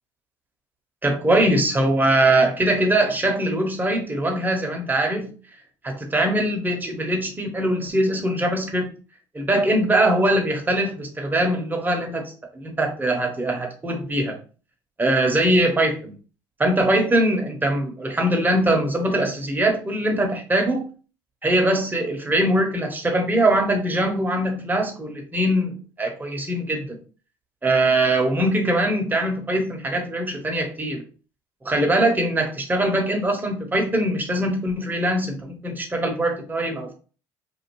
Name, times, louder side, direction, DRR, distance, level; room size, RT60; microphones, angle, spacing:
voice 1, 1.0-5.3 5.8-8.9 9.3-14.4 15.0-16.1 16.6-20.9 21.4-27.0 27.6-31.0 31.6-36.9, right 1 dB, 15° right, 2 dB, 1.0 m, -22 dB
2.6 x 2.4 x 3.0 m, 0.37 s
hypercardioid pair, 60°, 11 cm